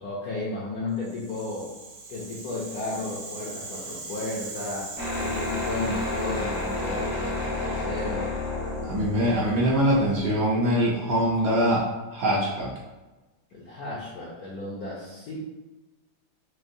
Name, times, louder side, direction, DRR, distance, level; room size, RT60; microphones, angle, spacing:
voice 1, 0.0-1.7 2.1-4.9 5.2-8.3 13.5-15.4, left 2 dB, 70° left, -6 dB, 0.9 m, -33 dB
Rattle (instrument), 1.0-9.2, right 3 dB, 80° right, 1.8 m, -42 dB
sound 1, 5.0-10.4, left 2 dB, 30° left, 0.3 m, -30 dB
voice 2, 8.8-11.8 12.1-12.7, equal, 65° right, -5 dB, 1.2 m, -23 dB
6.3 x 2.1 x 2.6 m, 1.1 s
omnidirectional pair, 2.3 m